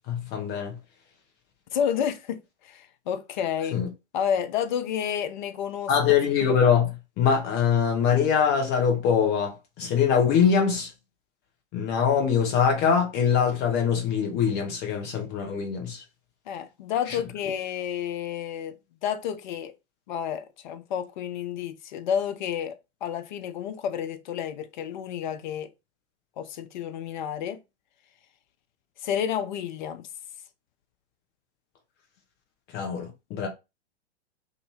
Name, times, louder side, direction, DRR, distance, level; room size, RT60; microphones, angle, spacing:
voice 1, 0.1-0.7 3.7-3.9 5.9-6.9 7.2-10.9 11.7-16.0 32.7-33.5, left 7 dB, 30° left, 1.0 m, -23 dB
voice 2, 1.7-3.8 4.1-6.0 16.5-18.8 19.0-19.7 20.1-22.8 23.0-25.7 26.4-27.6 29.0-30.1, left 8 dB, 45° left, 0.5 m, -30 dB
2.6 x 2.6 x 2.9 m
figure-of-eight pair, 100°, 33 cm